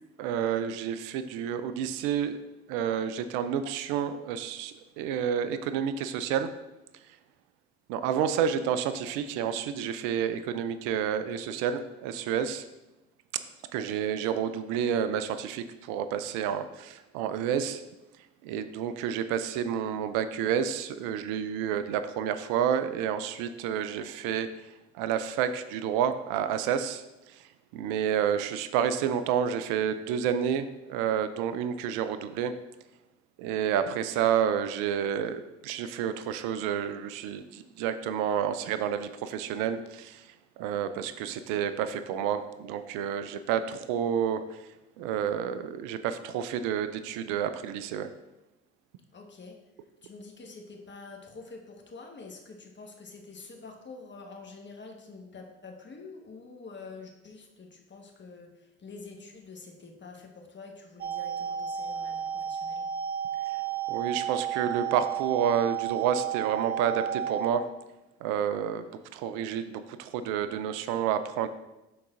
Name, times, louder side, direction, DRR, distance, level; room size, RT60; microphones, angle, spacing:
voice 1, 0.2-2.4 2.7-6.5 7.9-12.6 13.3-13.4 13.7-17.8 18.4-24.5 25.0-27.4 27.7-32.5 33.4-40.3 40.6-44.4 45.0-48.1 63.9-67.7 68.2-68.9 69.1-71.5, right 8 dB, 75° right, 11 dB, 0.5 m, -29 dB
voice 2, 49.1-49.6 50.0-62.9, left 4 dB, 35° left, 2 dB, 1.4 m, -47 dB
sound 1, 61.0-67.5, right 10 dB, 30° right, 0.8 m, -32 dB
11.0 x 3.9 x 2.5 m, 0.98 s
hypercardioid pair, 55°, 32 cm